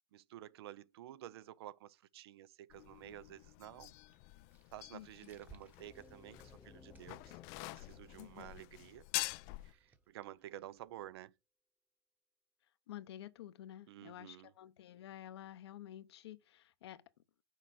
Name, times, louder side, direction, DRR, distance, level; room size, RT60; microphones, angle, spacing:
voice 1, 0.1-3.9 4.7-7.4 7.7-9.1 9.6-11.3 13.9-14.5, right 13 dB, 70° right, 0.6 m, -52 dB
sound 1, 2.7-9.7, left 24 dB, 45° left, 0.3 m, -46 dB
sound 2, 4.0-11.3, right 4 dB, 10° right, 1.0 m, -67 dB
sound 3, 5.8-9.7, left 4 dB, 5° left, 0.7 m, -62 dB
voice 2, 8.2-8.5 12.9-17.0, left 12 dB, 75° left, 1.0 m, -51 dB
6.4 x 4.5 x 6.2 m
supercardioid pair, 140°, 14 cm